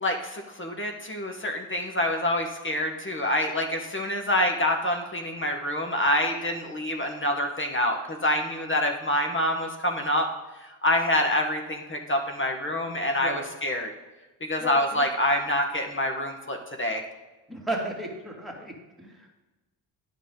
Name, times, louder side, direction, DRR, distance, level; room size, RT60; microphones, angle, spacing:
voice 1, 0.0-10.3 10.8-13.9 14.4-17.0, left 1 dB, 25° left, 3 dB, 1.2 m, -26 dB
voice 2, 14.6-15.1 17.5-19.3, right 1 dB, ahead, -1 dB, 2.3 m, -35 dB
10.0 x 5.7 x 3.8 m, 1.1 s
supercardioid pair, 55°, 49 cm